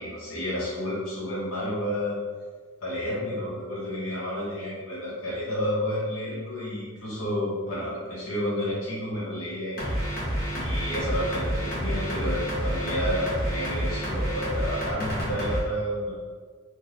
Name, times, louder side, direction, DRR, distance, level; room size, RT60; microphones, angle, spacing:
voice 1, 0.0-2.2 2.8-10.0 10.5-16.1, equal, 70° left, -7 dB, 0.9 m, -30 dB
sound 1, 9.8-15.6, equal, 45° left, 0.9 m, -29 dB
3.8 x 2.3 x 3.0 m, 1.5 s
head